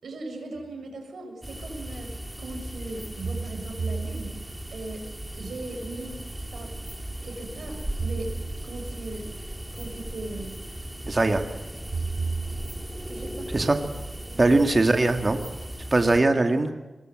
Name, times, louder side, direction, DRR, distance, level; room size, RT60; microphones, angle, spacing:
voice 1, 0.0-5.1 5.4-6.2 6.5-6.7 7.2-8.3 8.6-9.3 9.7-10.5 13.0-13.7 14.2-14.6, right 2 dB, 80° right, 3 dB, 6.5 m, -38 dB
sound 1, 0.6-0.7 3.2-4.8 8.0-9.1 11.9-13.3, right 4 dB, 65° right, 2.1 m, -33 dB
sound 2, 1.4-16.2, right 1 dB, 10° right, 2.4 m, -37 dB
voice 2, 11.1-11.4 13.5-13.8 14.4-15.4 15.9-16.7, right 2 dB, 30° right, 6 dB, 2.0 m, -20 dB
24.0 x 21.0 x 7.8 m, 1.2 s
wide cardioid pair, 95°, 0 cm